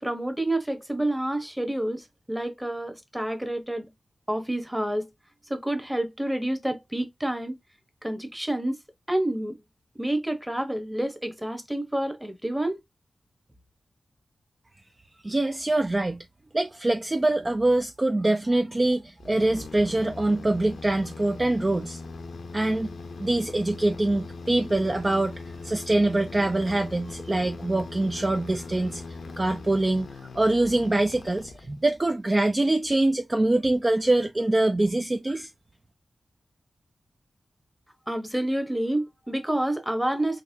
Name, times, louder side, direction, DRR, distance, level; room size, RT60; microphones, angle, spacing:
voice 1, 0.0-3.9 4.3-5.1 5.5-7.5 8.0-8.8 9.1-9.6 9.9-12.8 38.1-40.4, right 1 dB, 5° right, 1.0 m, -28 dB
voice 2, 15.2-16.2 16.5-22.0 22.5-22.9 23.2-29.0 29.4-35.5, right 2 dB, 30° right, 0.4 m, -24 dB
sound 1, 19.2-32.0, left 3 dB, 90° left, 0.7 m, -40 dB
4.1 x 2.9 x 2.6 m
wide cardioid pair, 70°, 0 cm